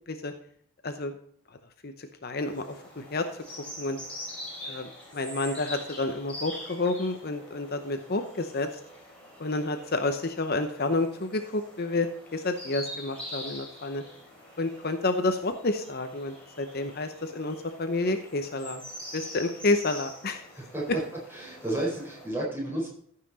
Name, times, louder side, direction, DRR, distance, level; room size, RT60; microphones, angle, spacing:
voice 1, 1.8-2.6 3.0-3.2 3.8-4.0 4.7-8.7 9.4-14.0 14.6-18.8 19.1-20.4, left 2 dB, 45° left, 7 dB, 0.8 m, -29 dB
sound 1, 2.4-22.3, equal, 5° left, 4.0 m, -44 dB
voice 2, 20.5-20.9 21.3-22.9, right 1 dB, 10° right, -4 dB, 4.3 m, -32 dB
14.5 x 5.8 x 4.1 m, 0.62 s
head